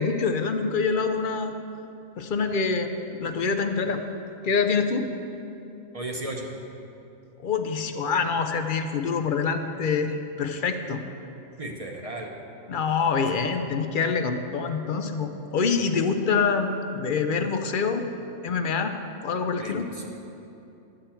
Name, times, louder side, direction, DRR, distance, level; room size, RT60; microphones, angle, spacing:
voice 1, 0.0-1.5 2.2-2.9 3.2-4.0 4.4-5.1 7.4-11.0 12.7-18.1 18.4-19.0 19.2-19.9, left 5 dB, 55° left, 7 dB, 0.6 m, -25 dB
voice 2, 5.9-6.5 11.6-12.3 19.6-20.1, right 1 dB, 30° right, 1 dB, 0.8 m, -35 dB
11.5 x 8.8 x 4.4 m, 2.8 s
omnidirectional pair, 1.4 m